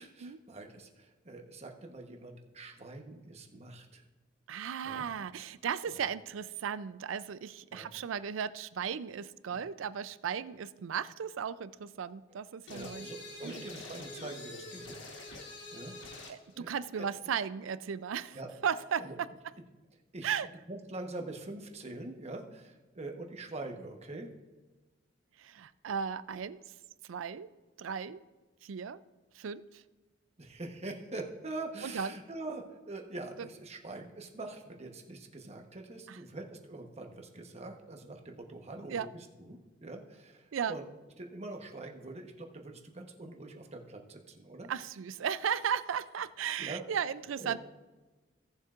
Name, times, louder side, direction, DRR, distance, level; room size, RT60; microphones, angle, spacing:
voice 1, 0.0-4.0 4.8-5.0 5.9-6.0 7.7-7.9 12.7-14.9 15.7-15.9 16.5-16.7 18.3-18.5 19.0-19.2 20.1-20.3 20.7-24.3 30.4-40.9 41.2-44.7 46.6-46.8 47.4-47.6, right 2 dB, 35° right, 3 dB, 1.1 m, -44 dB
voice 2, 4.5-13.1 13.4-13.7 16.3-18.4 18.6-19.3 20.2-20.5 25.4-26.6 27.0-27.5 27.8-28.2 28.6-29.0 29.3-29.8 31.8-32.1 36.1-36.2 38.9-39.1 40.5-40.8 44.7-47.6, right 7 dB, 90° right, 15 dB, 0.4 m, -36 dB
sound 1, 12.7-16.4, left 2 dB, 65° left, 1.3 m, -45 dB
17.0 x 7.2 x 2.5 m, 1.2 s
head